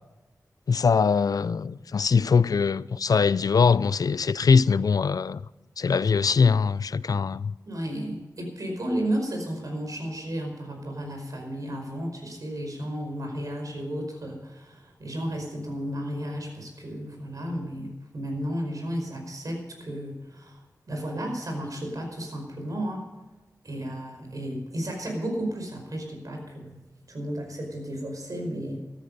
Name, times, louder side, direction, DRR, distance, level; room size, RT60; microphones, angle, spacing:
voice 1, 0.7-5.4 5.8-7.5, left 5 dB, 70° left, 0.4 m, -22 dB
voice 2, 7.6-20.5 20.9-23.0 23.6-26.8 27.1-28.8, equal, 65° right, 5.0 m, -33 dB
14.0 x 13.0 x 5.3 m
wide cardioid pair, 95°, 7 cm